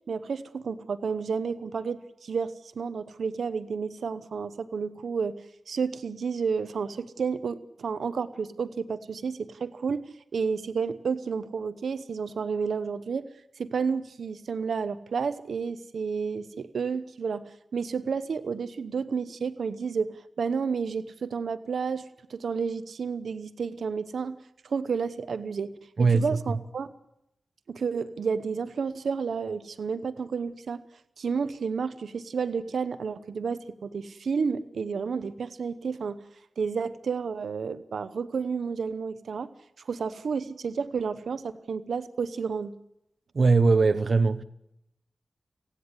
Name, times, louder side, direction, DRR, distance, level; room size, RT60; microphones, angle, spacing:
voice 1, 0.1-5.3 5.7-13.3 13.6-24.4 24.6-26.9 27.7-30.8 31.2-36.2 36.6-39.5 39.8-42.7, right 5 dB, 90° right, 0.9 m, -31 dB
voice 2, 26.0-26.4 43.3-44.4, right 4 dB, 60° right, 0.9 m, -21 dB
30.0 x 10.0 x 9.7 m
wide cardioid pair, 70°, 0 cm